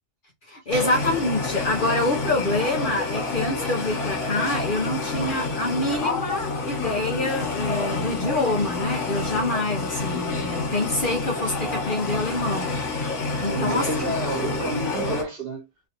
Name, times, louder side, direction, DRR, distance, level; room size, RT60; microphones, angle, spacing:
voice 1, 0.5-12.7 13.4-13.9, left 2 dB, 45° left, 0.9 m, -26 dB
sound 1, 0.7-15.2, left 3 dB, 70° left, 1.5 m, -28 dB
voice 2, 13.4-15.6, right 3 dB, 50° right, 1.3 m, -29 dB
3.2 x 2.6 x 2.8 m
omnidirectional pair, 1.3 m